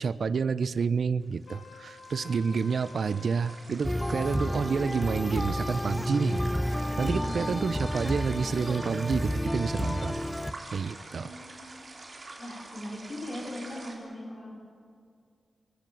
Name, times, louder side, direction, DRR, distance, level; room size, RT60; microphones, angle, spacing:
voice 1, 0.0-10.2 10.7-11.3, right 5 dB, 60° right, 16 dB, 0.4 m, -29 dB
sound 1, 1.2-14.0, right 2 dB, 40° right, 3.3 m, -46 dB
Trumpet, 1.5-3.7, left 4 dB, 75° left, 1.5 m, -49 dB
sound 2, 3.8-10.5, left 1 dB, 5° left, 0.7 m, -31 dB
voice 2, 7.0-7.5 11.2-14.5, left 1 dB, 40° left, -1 dB, 4.7 m, -41 dB
25.0 x 15.5 x 7.6 m, 2.3 s
wide cardioid pair, 150°, 0 cm